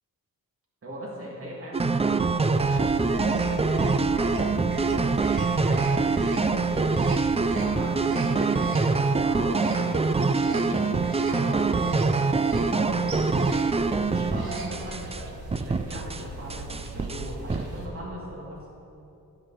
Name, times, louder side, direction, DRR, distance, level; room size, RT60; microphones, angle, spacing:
voice 1, 0.8-5.1 5.6-10.0 10.4-11.9 12.2-13.5 14.2-18.7, equal, 40° right, -3 dB, 2.9 m, -39 dB
sound 1, 1.7-15.2 15.5-16.2 16.5-17.7, right 4 dB, 20° right, 0.4 m, -24 dB
sound 2, 2.5-17.9, right 3 dB, 85° right, 1.7 m, -37 dB
12.5 x 12.0 x 4.3 m, 2.8 s
wide cardioid pair, 120°, 36 cm